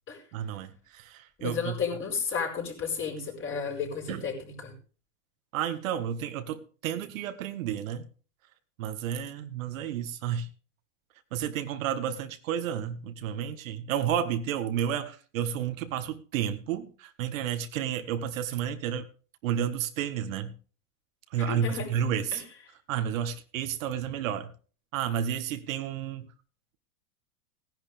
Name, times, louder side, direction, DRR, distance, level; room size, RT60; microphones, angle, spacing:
voice 1, 0.3-1.8 4.1-4.3 5.5-8.0 8.8-10.5 11.3-19.1 19.4-20.5 21.3-22.4 22.9-24.5 24.9-26.3, right 9 dB, 65° right, 9 dB, 1.6 m, -31 dB
voice 2, 1.4-4.7 21.5-21.9 22.3-22.4, left 6 dB, 30° left, 1 dB, 5.5 m, -32 dB
17.5 x 10.5 x 3.4 m, 0.39 s
hypercardioid pair, 130°, 43 cm